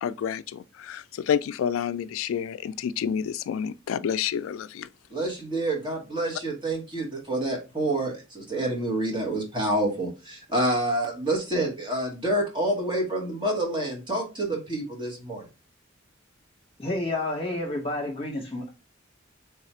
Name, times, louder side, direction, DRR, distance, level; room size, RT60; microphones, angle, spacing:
voice 1, 0.0-4.9, left 8 dB, 80° left, 0.3 m, -29 dB
voice 2, 5.1-15.4, right 1 dB, 25° right, 1.1 m, -28 dB
voice 3, 16.8-18.7, left 2 dB, 30° left, 1.0 m, -30 dB
3.5 x 2.4 x 4.2 m
head